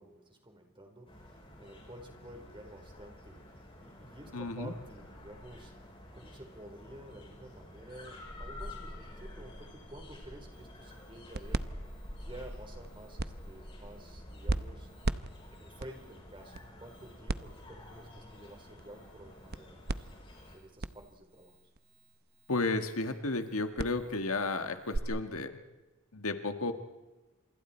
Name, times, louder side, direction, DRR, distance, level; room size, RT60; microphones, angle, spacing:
voice 1, 0.0-5.7 6.1-11.6 12.2-14.9 15.5-20.1 20.5-21.6, right 1 dB, 25° right, 4 dB, 4.2 m, -51 dB
sound 1, 1.1-20.6, left 1 dB, 25° left, 6.5 m, -49 dB
voice 2, 4.3-4.7 22.5-25.5 26.1-26.7, left 3 dB, 80° left, 7 dB, 1.6 m, -33 dB
sound 2, 10.5-25.0, right 2 dB, 50° right, 0.8 m, -40 dB
29.5 x 28.0 x 4.4 m, 1.1 s
head